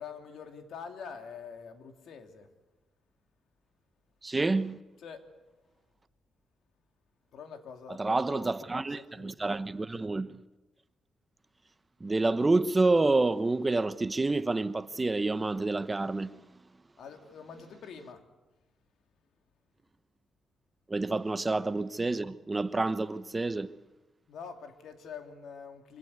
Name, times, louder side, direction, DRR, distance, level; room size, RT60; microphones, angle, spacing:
voice 1, 0.0-2.5 5.0-5.3 7.3-9.5 17.0-18.2 21.1-21.2 24.3-26.0, left 6 dB, 70° left, 2.8 m, -45 dB
voice 2, 4.2-4.8 7.9-10.4 12.0-16.4 20.9-23.7, right 3 dB, 20° right, 0.9 m, -28 dB
25.5 x 17.5 x 9.6 m
cardioid pair, 120°, 0 cm